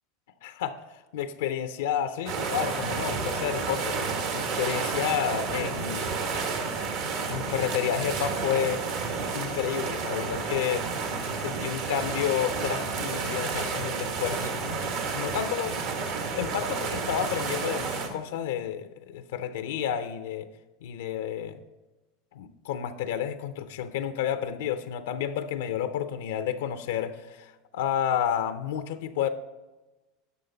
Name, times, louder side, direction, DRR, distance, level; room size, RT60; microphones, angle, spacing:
voice 1, 0.4-0.8 1.1-4.0 4.3-6.3 7.3-8.8 9.3-10.9 11.4-14.5 15.1-15.8 16.3-20.5 20.8-21.6 22.3-29.3, left 9 dB, 85° left, 10 dB, 0.5 m, -30 dB
sound 1, 2.3-18.1, right 4 dB, 70° right, 1.5 m, -31 dB
11.0 x 6.3 x 4.0 m, 1.1 s
supercardioid pair, 115°, 0 cm